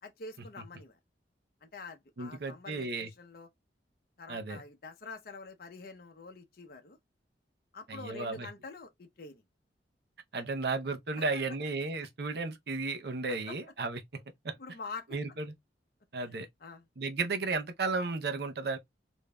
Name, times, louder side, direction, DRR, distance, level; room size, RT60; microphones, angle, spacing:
voice 1, 0.0-1.0 1.6-3.5 4.2-7.0 7.7-9.4 10.3-10.4 11.2-11.3 13.3-13.6 14.6-15.2 16.2-16.8, left 3 dB, 55° left, 0.7 m, -46 dB
voice 2, 2.2-3.1 4.3-4.6 7.9-8.5 10.3-14.5 15.1-15.4 16.1-16.5 17.0-18.8, right 3 dB, 60° right, 0.6 m, -34 dB
5.1 x 2.6 x 2.2 m
head